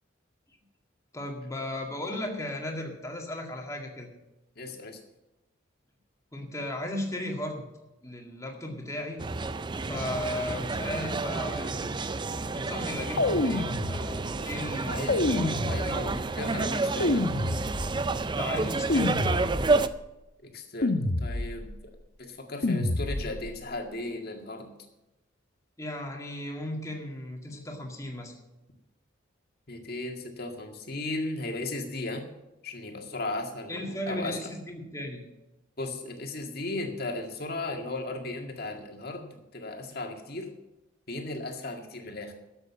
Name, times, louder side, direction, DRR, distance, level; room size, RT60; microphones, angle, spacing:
voice 1, 1.1-4.1 6.3-7.7 8.0-9.2 9.9-12.0 12.5-15.6 15.8-16.3 18.3-19.2 25.8-28.3 33.7-35.2, left 1 dB, 15° left, 1 dB, 2.0 m, -36 dB
voice 2, 4.6-5.0 14.9-17.3 20.4-21.7 22.2-24.7 29.7-32.2 32.6-34.5 35.8-40.5 41.1-42.3, left 2 dB, 50° left, 3 dB, 1.9 m, -36 dB
sound 1, 9.2-19.9, right 3 dB, 25° right, 0.4 m, -30 dB
sound 2, 13.2-14.4 15.1-16.3 17.0-18.1 18.9-19.9 20.8-21.8 22.6-23.5, left 2 dB, 65° left, 1.0 m, -28 dB
12.5 x 7.9 x 7.3 m, 0.97 s
head